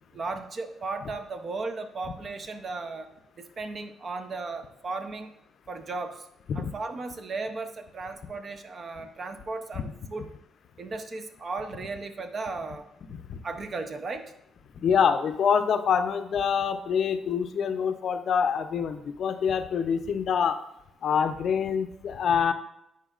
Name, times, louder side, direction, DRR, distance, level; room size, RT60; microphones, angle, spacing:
voice 1, 0.1-3.1 3.4-5.3 5.7-6.3 6.5-10.3 10.8-12.9 13.4-14.3, right 3 dB, 45° right, 7 dB, 0.7 m, -35 dB
voice 2, 13.1-13.4 14.8-20.6 21.0-22.5, left 7 dB, 60° left, 9 dB, 0.5 m, -26 dB
10.0 x 4.5 x 2.4 m, 0.81 s
cardioid pair, 90°, 0 cm